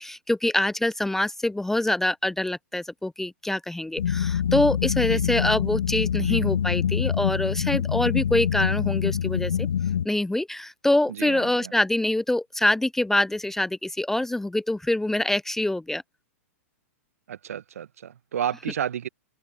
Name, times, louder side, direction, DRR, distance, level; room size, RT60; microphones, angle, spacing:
voice 1, 0.0-9.7 10.0-16.0, left 1 dB, 5° left, 0.5 m, -25 dB
sound 1, 4.0-10.1, left 8 dB, 75° left, 1.1 m, -25 dB
voice 2, 11.2-11.7 17.3-19.1, right 9 dB, 70° right, 1.0 m, -32 dB
hypercardioid pair, 110°, 8 cm